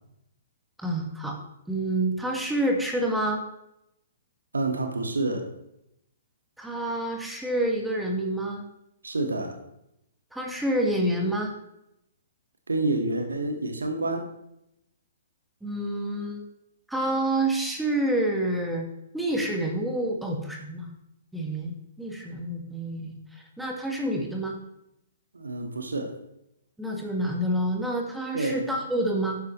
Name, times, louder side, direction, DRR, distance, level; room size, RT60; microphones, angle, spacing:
voice 1, 0.8-1.4 1.7-3.4 6.6-8.6 10.3-11.5 15.6-16.4 16.9-18.9 19.1-20.9 21.3-24.6 26.8-29.4, right 1 dB, 5° right, 1 dB, 1.7 m, -28 dB
voice 2, 4.5-5.5 9.0-9.6 12.7-14.3 25.3-26.2 28.3-28.6, right 2 dB, 75° right, 5 dB, 1.8 m, -28 dB
12.5 x 9.5 x 3.2 m, 0.82 s
figure-of-eight pair, 120°, 0 cm